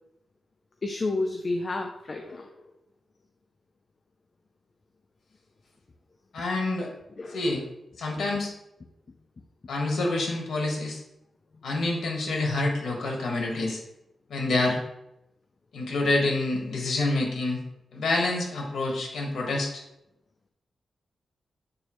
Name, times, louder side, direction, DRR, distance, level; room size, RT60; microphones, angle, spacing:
voice 1, 0.8-2.5 7.2-7.5, left 2 dB, 35° left, 4 dB, 0.5 m, -30 dB
voice 2, 6.3-6.9 7.3-7.6 8.0-8.5 9.7-11.0 11.6-13.8 14.3-14.8 15.7-17.6 17.9-19.8, left 2 dB, 85° left, 0 dB, 1.6 m, -27 dB
8.6 x 4.1 x 3.0 m, 0.84 s
wide cardioid pair, 130°, 0 cm